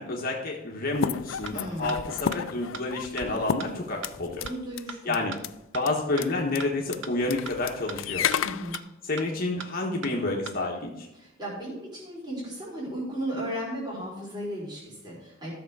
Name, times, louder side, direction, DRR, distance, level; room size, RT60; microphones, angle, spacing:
voice 1, 0.0-4.3 5.0-5.3 5.7-8.2 9.0-11.1, left 2 dB, 50° left, -2 dB, 1.4 m, -29 dB
sound 1, 0.9-4.5 4.8-4.9 5.1-5.5 5.9-6.0 6.1-6.3 6.6-6.7 6.9-8.8, left 8 dB, 90° left, 0.4 m, -32 dB
voice 2, 1.5-2.1 4.4-5.1 8.4-8.8 11.1-15.5, equal, 25° right, -5 dB, 4.0 m, -35 dB
sound 2, 1.5-1.6 1.9-2.0 2.3-2.4 2.7-2.8 3.2-3.3 3.6-3.7 4.0-4.1 4.5-4.6 4.9-5.0 5.3-5.4 5.7-5.8 6.2-6.3 6.6-6.7 7.0-7.1 7.5-7.6 7.9-8.0 8.3-8.4 8.7-8.8 9.2-9.3 9.6-9.7 10.0-10.1 10.5-10.6, right 5 dB, 75° right, 0.9 m, -38 dB
13.5 x 6.9 x 4.8 m, 0.94 s
head